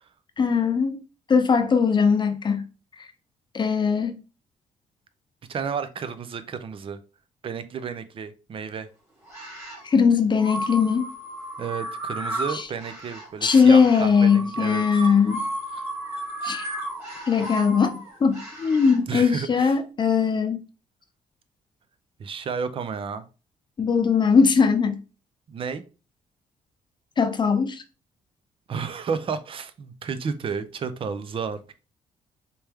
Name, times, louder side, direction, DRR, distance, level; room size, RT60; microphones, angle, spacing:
voice 1, 0.4-1.0 1.3-2.7 3.0-3.1 3.5-4.2 9.8-11.1 12.5-12.7 13.4-15.4 16.4-16.7 17.3-20.6 23.8-25.0 27.2-27.8, left 5 dB, 35° left, 0.7 m, -20 dB
voice 2, 5.5-7.0 7.4-8.9 11.6-14.8 15.7-15.8 19.1-19.8 22.2-23.2 25.5-25.8 28.7-31.6, right 6 dB, 40° right, 0.6 m, -32 dB
sound 1, 9.3-9.9 10.4-19.0, right 1 dB, 20° right, 1.9 m, -34 dB
4.3 x 3.4 x 3.5 m
cardioid pair, 105°, 14 cm